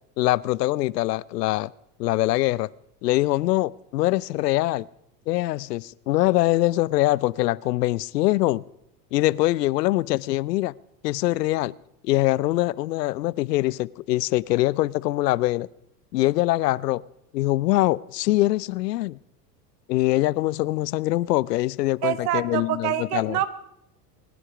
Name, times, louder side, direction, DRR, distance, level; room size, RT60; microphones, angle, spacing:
voice 1, 0.2-1.7 2.0-2.7 3.0-4.9 5.3-8.6 9.1-10.7 11.0-11.7 12.0-15.7 16.1-17.0 17.3-19.2 19.9-23.4, left 17 dB, 80° left, 0.6 m, -23 dB
voice 2, 22.0-23.5, right 12 dB, 65° right, 1.3 m, -26 dB
22.5 x 9.9 x 4.9 m
hypercardioid pair, 95°, 48 cm